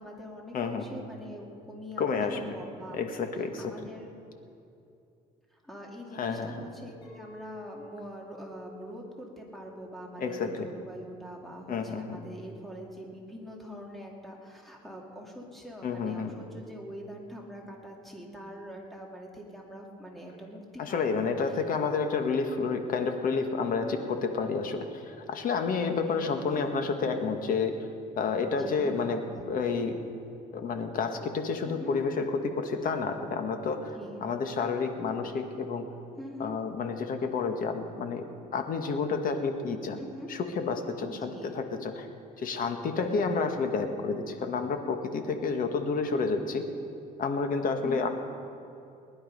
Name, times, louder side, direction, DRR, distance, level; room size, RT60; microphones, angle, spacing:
voice 1, 0.0-3.0 3.6-4.1 5.5-21.6 23.6-24.0 26.0-26.8 28.6-29.2 31.6-32.0 33.8-34.2 36.2-36.6 40.0-40.3 41.1-41.6 42.5-42.6 42.9-43.5 47.8-48.1, equal, ahead, -1 dB, 2.4 m, -44 dB
voice 2, 0.5-0.9 2.0-2.4 2.9-3.7 6.1-6.5 10.2-10.7 11.7-12.2 15.8-16.3 20.8-27.7 28.2-29.2 29.5-30.0 30.5-33.9 34.2-35.9 36.4-38.3 38.5-40.0 40.3-42.1 42.4-46.6 47.2-48.1, left 5 dB, 55° left, 6 dB, 1.5 m, -30 dB
Chink clink, 7.0-12.2, left 1 dB, 85° left, 4.4 m, -51 dB
20.0 x 11.0 x 5.3 m, 2.6 s
cardioid pair, 110°, 17 cm